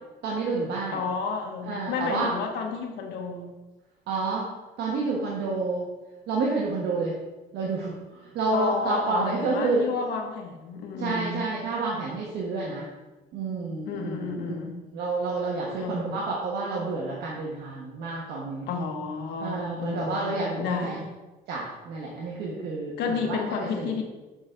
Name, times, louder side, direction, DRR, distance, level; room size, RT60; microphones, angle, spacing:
voice 1, 0.2-1.0 1.6-2.3 4.1-4.4 4.8-5.9 6.3-7.1 7.5-9.8 11.0-12.9 13.3-14.5 14.9-18.7 19.4-21.0 21.5-24.0, right 3 dB, 75° right, -3 dB, 1.4 m, -29 dB
voice 2, 0.9-3.5 8.5-11.5 13.9-14.8 15.8-16.2 18.7-21.1 23.0-24.0, left 5 dB, 80° left, 3 dB, 1.4 m, -31 dB
6.9 x 4.1 x 5.1 m, 1.2 s
cardioid pair, 110°, 17 cm